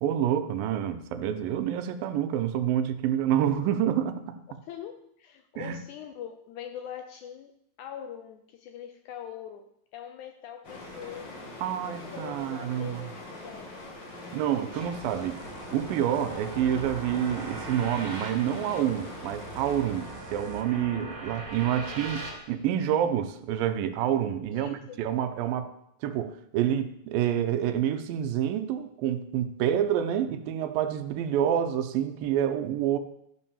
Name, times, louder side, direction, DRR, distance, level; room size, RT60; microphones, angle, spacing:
voice 1, 0.0-4.4 5.6-5.8 11.6-13.1 14.3-15.4 15.7-25.7 26.0-33.0, right 10 dB, 85° right, 2.4 m, -28 dB
voice 2, 4.6-11.3 11.8-13.8 21.7-22.0 24.5-25.0, left 9 dB, 80° left, 1.8 m, -43 dB
sound 1, 10.6-20.8, left 2 dB, 40° left, 1.9 m, -43 dB
sound 2, 14.7-22.4, right 3 dB, 40° right, 3.1 m, -41 dB
sound 3, 15.0-20.7, right 6 dB, 65° right, 2.1 m, -49 dB
13.0 x 5.6 x 7.0 m
omnidirectional pair, 4.1 m